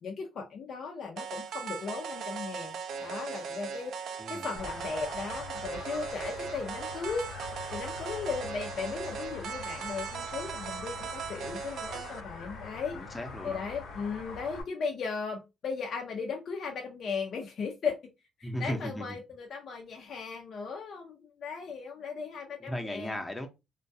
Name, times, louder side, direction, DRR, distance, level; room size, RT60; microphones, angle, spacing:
voice 1, 0.0-4.0 4.3-7.3 7.7-13.0 13.4-18.0 18.6-23.2, left 5 dB, 60° left, 0.5 m, -37 dB
sound 1, 1.2-12.2, right 6 dB, 70° right, 0.3 m, -39 dB
voice 2, 4.2-4.6 12.9-13.6 18.4-19.2 22.6-23.5, equal, 10° left, 0.7 m, -36 dB
sound 2, 4.6-14.6, left 4 dB, 80° left, 0.9 m, -44 dB
2.3 x 2.1 x 2.6 m
cardioid pair, 90°, 0 cm